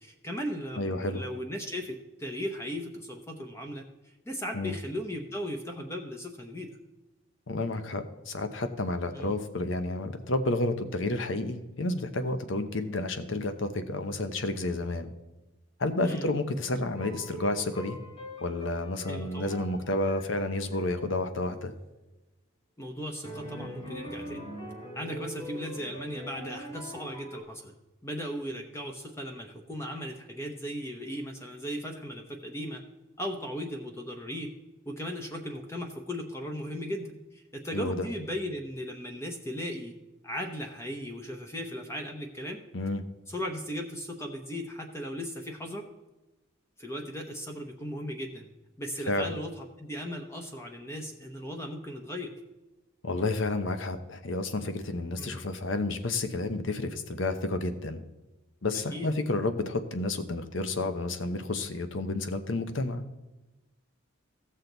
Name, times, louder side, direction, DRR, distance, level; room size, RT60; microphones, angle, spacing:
voice 1, 0.0-3.8 4.3-6.8 9.1-9.3 16.0-16.3 19.1-19.6 22.8-24.5 24.9-27.7 28.0-32.8 33.2-34.5 34.9-40.0 40.2-42.6 43.3-45.9 46.8-48.5 48.8-52.3 55.2-55.4 58.9-59.1, equal, 15° left, 2 dB, 0.9 m, -37 dB
voice 2, 0.8-1.2 4.5-4.8 7.5-15.1 15.8-18.0 18.4-21.7 37.7-38.1 42.7-43.0 49.1-49.3 53.0-58.0 58.6-63.2, left 2 dB, 65° left, 9 dB, 0.9 m, -30 dB
sound 1, 16.9-21.2 23.2-27.4, equal, 30° left, 3.3 m, -42 dB
16.0 x 6.6 x 4.0 m, 1.1 s
head